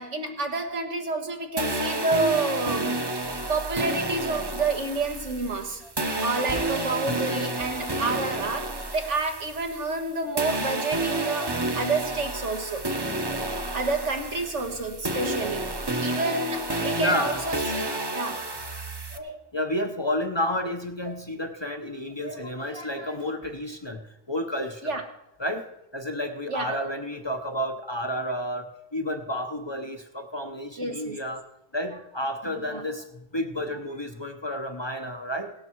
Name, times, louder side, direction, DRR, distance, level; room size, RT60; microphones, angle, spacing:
voice 1, 0.0-3.0 3.5-5.8 6.2-12.8 13.7-17.8 18.1-18.4 21.1-21.2 24.8-25.0 26.5-26.9 30.8-31.2 32.7-32.8, right 3 dB, 85° right, 5 dB, 2.0 m, -29 dB
sound 1, 1.6-10.1 10.4-19.2, right 2 dB, 20° right, 0.9 m, -30 dB
voice 2, 14.6-14.9 16.8-17.4 17.8-18.0 18.3-18.6 19.1-24.9 25.4-25.6 25.9-28.6 28.9-31.4 31.7-35.5, left 1 dB, 25° left, 6 dB, 0.8 m, -31 dB
17.5 x 12.0 x 4.6 m, 0.84 s
omnidirectional pair, 1.2 m